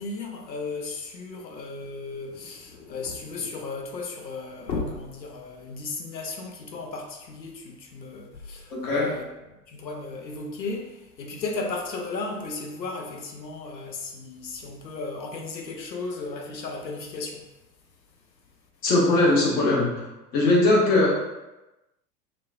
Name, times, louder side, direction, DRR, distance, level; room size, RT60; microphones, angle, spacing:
voice 1, 0.0-9.3 9.7-17.4, left 3 dB, 85° left, 2 dB, 0.6 m, -35 dB
voice 2, 8.7-9.1 18.8-20.1 20.3-21.1, left 2 dB, 20° left, -4 dB, 0.5 m, -20 dB
3.0 x 2.1 x 2.5 m, 1.0 s
figure-of-eight pair, 90°, 50 cm